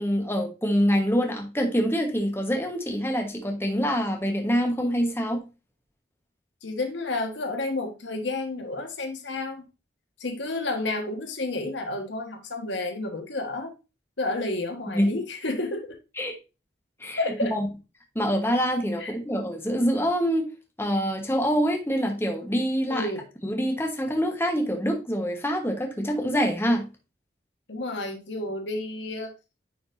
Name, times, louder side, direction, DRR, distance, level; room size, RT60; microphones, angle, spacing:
voice 1, 0.0-5.4 14.9-15.1 16.2-16.3 17.0-17.2 17.5-17.7 18.1-20.5 20.8-23.1 23.4-26.9, equal, 15° left, 1.2 m, -25 dB
voice 2, 6.6-9.7 10.2-13.7 14.2-16.0 17.2-17.5 19.0-19.1 22.9-23.2 27.7-29.3, left 2 dB, 85° left, 1.4 m, -30 dB
9.9 x 4.4 x 2.6 m
head